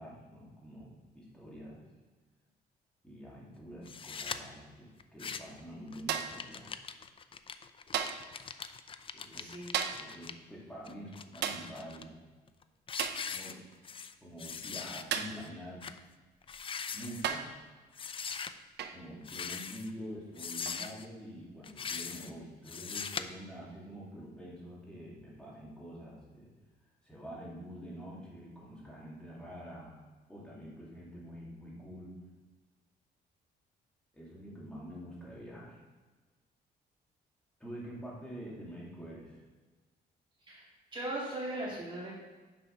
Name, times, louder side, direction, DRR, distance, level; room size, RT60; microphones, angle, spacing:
voice 1, 0.0-1.8 3.0-6.8 9.1-9.5 10.0-12.2 13.3-13.6 14.2-15.8 16.9-17.4 18.9-26.5 27.0-32.1 34.1-35.8 37.6-39.4, equal, 5° left, -6 dB, 2.5 m, -46 dB
sound 1, 3.9-4.4 5.0-5.6 5.9-10.3 10.9-12.0 12.5-12.6 12.9-14.1 14.4-15.0 15.4-15.5 15.8-16.0 16.4-17.3 17.9-18.5 19.2-19.9 20.4-21.0 21.6-22.3 22.7-23.2, left 6 dB, 30° left, 0.4 m, -41 dB
sound 2, 6.1-6.5 7.9-8.3 9.7-10.1 11.4-11.7 13.0-13.3 15.1-15.5 16.5-16.6 17.2-17.6 18.8-19.0 20.7-20.9, right 8 dB, 80° right, 0.6 m, -35 dB
voice 2, 9.3-9.9 40.5-40.7 40.9-42.1, right 1 dB, 25° right, -5 dB, 1.9 m, -38 dB
7.0 x 5.7 x 5.3 m, 1.3 s
cardioid pair, 125°, 18 cm